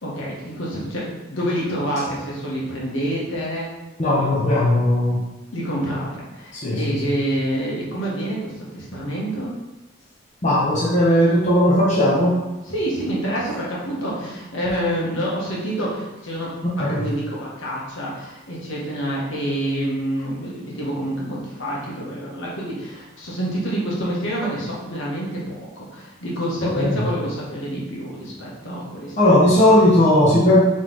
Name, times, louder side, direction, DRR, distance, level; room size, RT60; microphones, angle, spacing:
voice 1, 0.0-3.7 5.5-9.6 12.7-16.5 16.8-29.2, right 1 dB, 75° left, -5 dB, 1.3 m, -27 dB
voice 2, 4.0-5.2 6.5-7.1 10.4-12.4 16.6-17.0 26.6-27.0 29.2-30.6, left 1 dB, 35° left, -7 dB, 0.8 m, -17 dB
3.9 x 3.2 x 3.9 m, 1.1 s
head